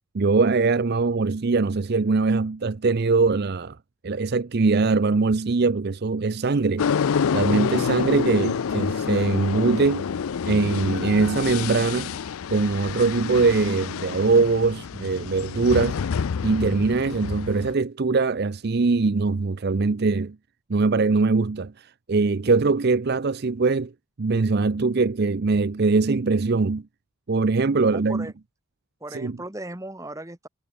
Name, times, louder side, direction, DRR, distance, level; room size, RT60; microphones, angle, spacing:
voice 1, 0.1-3.8 4.0-6.9 7.3-10.1 10.4-12.1 12.5-16.0 16.4-20.4 20.7-23.9 24.2-26.8 27.3-28.3 29.1-29.4, right 4 dB, 45° right, 0.5 m, -22 dB
sound 1, 6.8-17.7, left 6 dB, 75° left, 0.4 m, -28 dB
voice 2, 27.8-28.3 29.0-30.5, right 1 dB, 15° right, 1.5 m, -37 dB
head